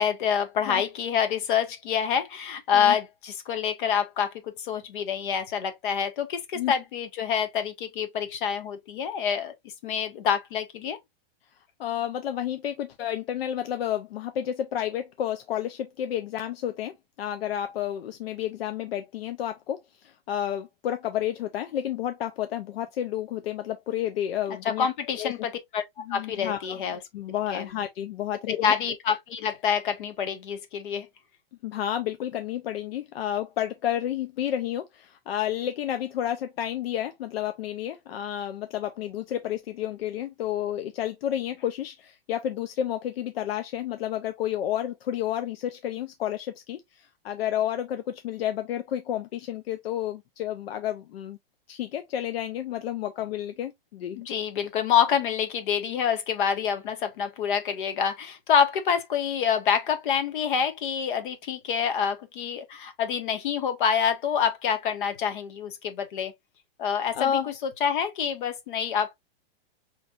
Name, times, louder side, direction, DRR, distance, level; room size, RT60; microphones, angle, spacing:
voice 1, 0.0-9.5 9.8-11.0 24.8-25.8 26.1-27.0 27.5-27.6 28.5-31.1 54.3-66.3 66.8-69.1, left 7 dB, 55° left, 1.2 m, -27 dB
voice 2, 11.8-24.9 25.1-25.3 26.1-26.8 27.1-28.7 31.6-51.4 51.7-54.3 67.1-67.5, left 11 dB, 80° left, 0.7 m, -31 dB
5.1 x 3.2 x 2.4 m
supercardioid pair, 160°, 30 cm